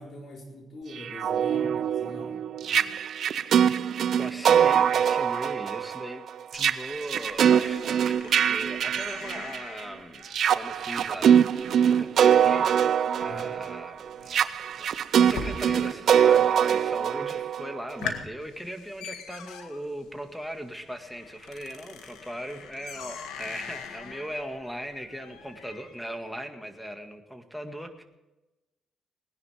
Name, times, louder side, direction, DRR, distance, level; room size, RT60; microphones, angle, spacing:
voice 1, 0.0-3.0 13.3-13.6, left 1 dB, 50° left, 1 dB, 4.2 m, -44 dB
sound 1, 1.0-9.8 10.3-18.1, right 8 dB, 65° right, 0.6 m, -23 dB
voice 2, 4.2-6.2 6.5-10.2 10.5-11.4 11.9-14.9 15.2-28.0, equal, ahead, 6 dB, 1.9 m, -39 dB
sound 2, 6.5-16.1 16.4-17.0 17.4-17.5 17.8-26.1, left 6 dB, 90° left, 1.8 m, -43 dB
18.5 x 10.5 x 5.1 m, 1.0 s
cardioid pair, 90°, 0 cm